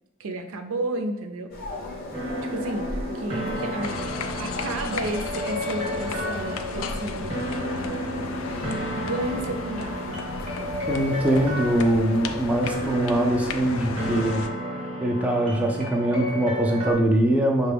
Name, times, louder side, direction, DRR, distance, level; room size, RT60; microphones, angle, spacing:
voice 1, 0.2-1.5 2.5-4.1 4.4-7.4 8.5-10.3, right 2 dB, 85° right, 6 dB, 0.5 m, -32 dB
sound 1, 1.5-14.3, left 1 dB, 45° left, 0.7 m, -38 dB
sound 2, 2.1-16.9, equal, 25° right, 0.8 m, -32 dB
sound 3, 3.8-14.5, left 5 dB, 75° left, 0.4 m, -35 dB
voice 2, 10.9-14.5 15.0-17.7, right 1 dB, 5° right, 0 dB, 0.4 m, -23 dB
5.7 x 2.2 x 3.4 m, 1.1 s
head